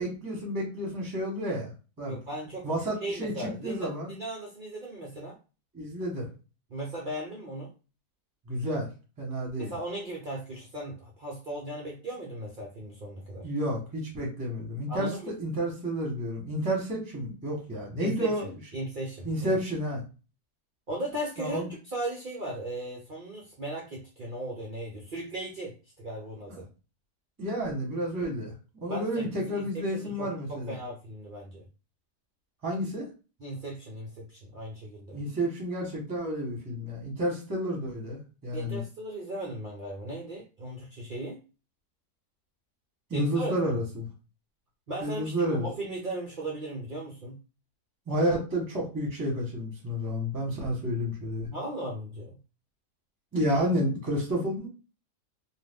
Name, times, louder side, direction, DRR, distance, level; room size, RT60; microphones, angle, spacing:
voice 1, 0.0-1.7 2.0-2.2 2.6-4.1 5.7-6.3 8.5-8.9 9.2-9.7 13.4-18.5 19.2-20.0 21.4-21.7 26.5-26.6 27.4-30.8 32.6-33.1 35.1-38.8 43.1-44.1 45.0-45.7 48.1-51.5 53.3-54.7, equal, 15° right, -1 dB, 0.8 m, -30 dB
voice 2, 2.1-2.7 3.0-5.4 6.7-7.7 9.6-13.5 14.9-15.3 18.0-18.3 18.7-19.6 20.9-26.7 28.9-31.6 33.4-35.2 38.5-41.4 43.1-43.5 44.9-47.3 51.5-52.4, right 1 dB, 60° right, -3 dB, 0.5 m, -37 dB
2.5 x 2.3 x 3.5 m, 0.32 s
omnidirectional pair, 1.7 m